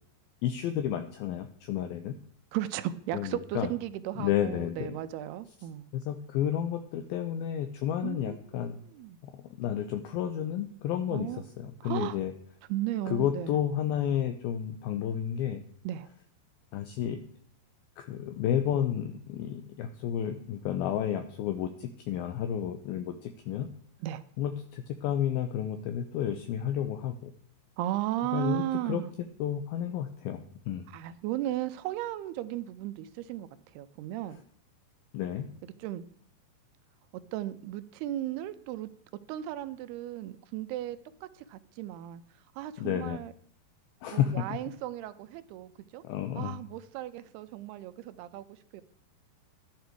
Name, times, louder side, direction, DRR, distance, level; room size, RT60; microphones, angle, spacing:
voice 1, 0.4-2.1 3.1-3.7 4.2-5.0 5.9-8.8 9.2-12.3 13.1-15.6 16.7-17.2 18.0-23.7 24.4-27.3 28.3-29.0 29.4-30.8 35.1-35.5 42.8-43.2 44.0-44.6 46.0-46.6, left 10 dB, 80° left, 8 dB, 2.2 m, -31 dB
voice 2, 2.5-5.9 8.0-8.4 8.8-9.2 11.1-11.4 11.8-12.2 12.7-13.5 15.8-16.1 24.0-24.2 27.8-29.1 30.9-34.4 35.8-36.0 37.3-38.9 39.3-42.2 42.6-43.3 44.1-46.0 46.4-48.8, right 14 dB, 80° right, 13 dB, 2.4 m, -35 dB
11.5 x 10.5 x 4.6 m, 0.64 s
omnidirectional pair, 5.1 m